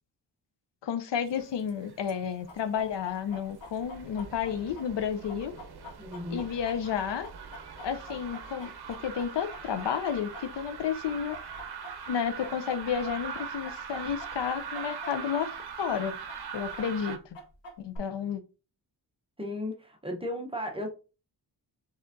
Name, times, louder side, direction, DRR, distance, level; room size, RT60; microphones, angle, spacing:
voice 1, 0.8-5.6 6.3-7.3 7.8-11.4 12.1-15.5 15.8-16.2 16.5-17.2 17.8-18.4, left 8 dB, 70° left, 0.6 m, -31 dB
sound 1, 1.3-2.2 2.5-17.2, right 6 dB, 60° right, 0.7 m, -42 dB
Chicken rooster, 2.5-10.8 11.1-15.4 15.7-15.8 16.3-18.0, left 1 dB, 85° left, 1.2 m, -46 dB
voice 2, 6.0-6.5 19.4-20.9, left 1 dB, 10° right, 0.8 m, -35 dB
4.4 x 3.6 x 2.6 m
wide cardioid pair, 135°, 44 cm